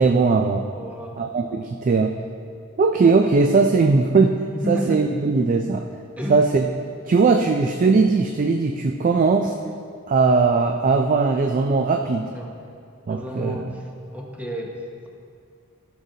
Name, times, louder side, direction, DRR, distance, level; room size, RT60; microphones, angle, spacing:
voice 1, 0.0-0.7 1.2-2.2 2.8-4.4 4.7-5.8 6.3-6.6 7.1-9.6 10.1-12.3 13.1-13.7, right 4 dB, 40° right, 4 dB, 0.3 m, -19 dB
voice 2, 0.8-1.2 4.5-5.0 6.2-6.5 12.3-12.5 13.1-15.1, equal, 5° right, 0 dB, 0.9 m, -31 dB
13.5 x 6.4 x 2.7 m, 2.3 s
head